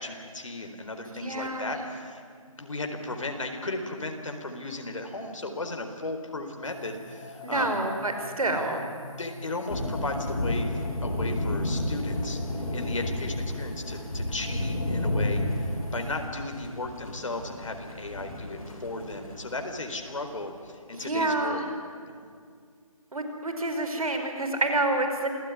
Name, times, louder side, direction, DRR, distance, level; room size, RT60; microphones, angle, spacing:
voice 1, 0.0-7.8 9.2-12.4 12.7-21.6 22.1-22.3, left 2 dB, 60° left, 4 dB, 4.2 m, -36 dB
voice 2, 1.1-1.8 7.4-8.8 20.9-21.7 23.1-25.3, right 2 dB, 75° right, 5 dB, 5.4 m, -28 dB
sound 1, 6.6-16.2, left 3 dB, 5° left, 0.6 m, -44 dB
sound 2, 9.7-19.8, left 1 dB, 80° left, 7.3 m, -31 dB
27.5 x 18.0 x 9.7 m, 2.1 s
figure-of-eight pair, 170°, 18 cm